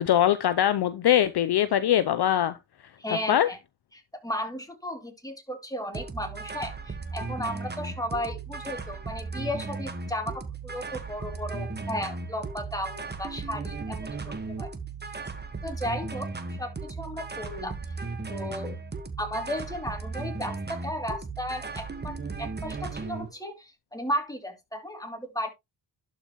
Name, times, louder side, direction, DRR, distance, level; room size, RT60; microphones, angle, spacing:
voice 1, 0.0-2.6 3.3-3.5, left 11 dB, 55° left, 0.7 m, -22 dB
voice 2, 3.0-3.6 4.2-14.7 15.1-15.2 15.6-16.3 16.6-17.7 18.3-18.8 19.2-25.5, equal, 5° left, 2.9 m, -34 dB
sound 1, 5.9-23.3, right 4 dB, 20° right, 1.4 m, -36 dB
11.5 x 5.5 x 3.0 m
cardioid pair, 95°, 47 cm